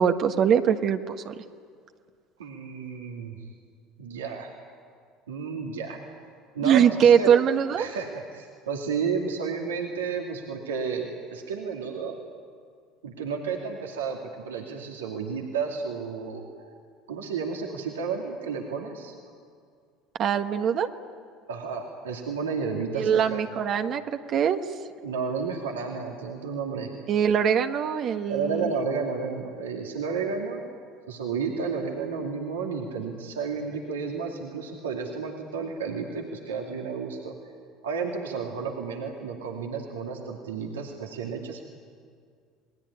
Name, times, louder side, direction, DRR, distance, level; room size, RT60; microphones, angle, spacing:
voice 1, 0.0-1.3 6.6-7.9 20.2-20.9 22.9-24.0 24.3-24.6 27.1-28.6, right 8 dB, 50° right, 6 dB, 1.4 m, -22 dB
voice 2, 2.4-3.5 4.0-4.5 5.3-6.0 6.5-7.3 7.8-12.2 13.0-16.4 17.1-19.1 21.5-23.4 25.0-26.9 28.3-30.6 31.1-37.3 37.8-41.6, right 5 dB, 85° right, 0 dB, 2.6 m, -32 dB
28.5 x 20.5 x 9.9 m, 2.1 s
hypercardioid pair, 70°, 0 cm